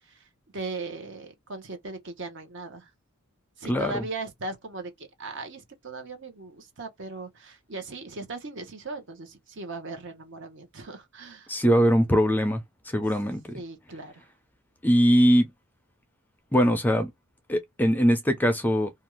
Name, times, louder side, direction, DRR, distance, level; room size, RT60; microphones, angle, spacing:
voice 1, 0.0-2.9 3.6-11.6 13.5-14.3, right 3 dB, 55° right, 0.9 m, -38 dB
voice 2, 3.7-4.0 11.5-13.5 14.8-15.5 16.5-17.1 17.5-18.9, equal, 10° left, 0.4 m, -22 dB
2.5 x 2.3 x 3.0 m
head